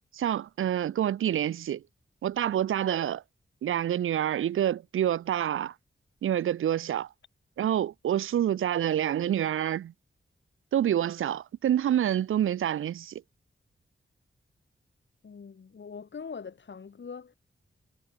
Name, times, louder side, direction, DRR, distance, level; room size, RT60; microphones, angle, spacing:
voice 1, 0.1-1.8 2.2-3.2 3.6-5.7 6.2-7.1 7.6-9.9 10.7-13.2, right 10 dB, 85° right, 0.4 m, -27 dB
voice 2, 15.2-17.3, left 5 dB, 65° left, 2.8 m, -42 dB
wide cardioid pair, 90°, 21 cm